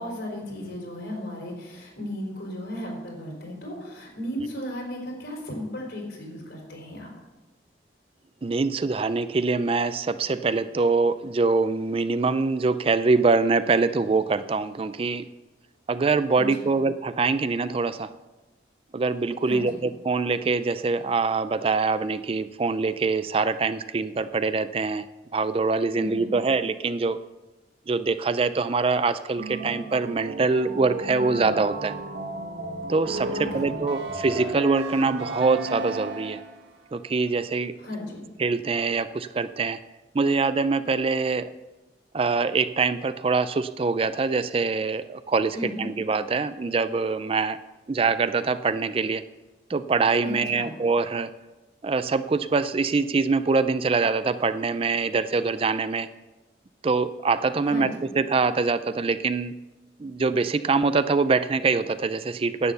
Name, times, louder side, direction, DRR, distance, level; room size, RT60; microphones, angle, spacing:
voice 1, 0.0-7.1 16.3-16.8 19.4-19.8 25.9-26.3 33.3-33.9 37.8-38.2 45.5-45.9 50.2-50.7 57.6-57.9, left 1 dB, 70° left, -1 dB, 4.5 m, -35 dB
voice 2, 8.4-15.2 15.9-18.1 18.9-25.0 25.3-27.2 27.9-31.9 32.9-36.4 36.9-37.7 38.4-39.8 40.1-41.5 42.1-47.6 47.9-49.2 49.7-51.3 51.8-56.1 56.8-59.5 60.0-62.7, right 4 dB, 30° right, 13 dB, 0.4 m, -24 dB
sound 1, 29.4-36.7, right 2 dB, 75° right, 1.6 m, -34 dB
10.5 x 9.0 x 6.8 m, 1.1 s
head